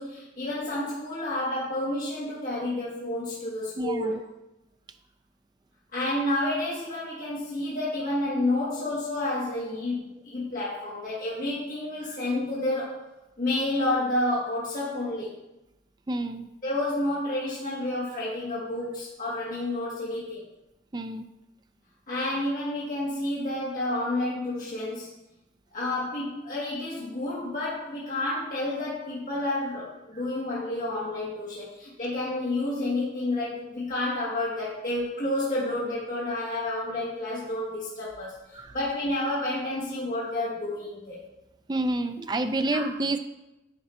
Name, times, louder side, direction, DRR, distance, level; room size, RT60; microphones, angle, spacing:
voice 1, 0.0-4.2 5.9-13.0 13.4-15.4 16.6-20.4 22.1-25.1 25.7-41.2 42.7-42.8, left 1 dB, 45° left, -8 dB, 1.7 m, -30 dB
voice 2, 3.8-4.2 12.0-12.2 16.1-16.5 20.9-21.3 38.5-38.7 41.7-43.2, right 2 dB, 25° right, 8 dB, 0.4 m, -29 dB
9.7 x 3.9 x 4.3 m, 0.94 s
head